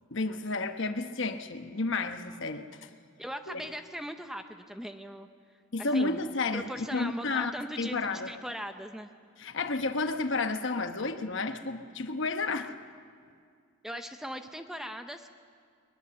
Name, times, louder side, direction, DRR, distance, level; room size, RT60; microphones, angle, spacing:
voice 1, 0.1-2.9 3.5-3.6 5.7-7.5 7.8-8.3 9.4-12.7, left 3 dB, 55° left, 7 dB, 1.1 m, -31 dB
voice 2, 3.2-5.3 5.8-6.2 6.5-9.1 13.8-15.3, equal, ahead, 7 dB, 0.6 m, -39 dB
21.5 x 20.5 x 7.1 m, 2.2 s
head